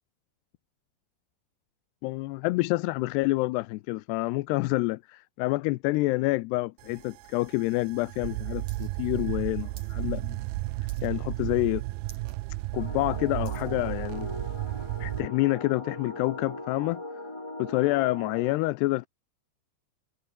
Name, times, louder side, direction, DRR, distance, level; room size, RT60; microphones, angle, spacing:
voice 1, 2.0-10.4 11.0-11.8 12.7-14.3 15.0-17.3 17.6-19.1, left 21 dB, 90° left, 2.8 m, -28 dB
sound 1, 6.8-15.3, right 19 dB, 80° right, 2.4 m, -33 dB
sound 2, 8.7-8.9 9.2-10.0 10.3-10.6 10.9-11.3 11.7-11.8 12.0-12.4 12.8-13.7 14.4-14.5, right 5 dB, 45° right, 5.6 m, -53 dB
sound 3, 12.7-18.5, left 2 dB, 15° left, 1.3 m, -40 dB
omnidirectional pair, 4.7 m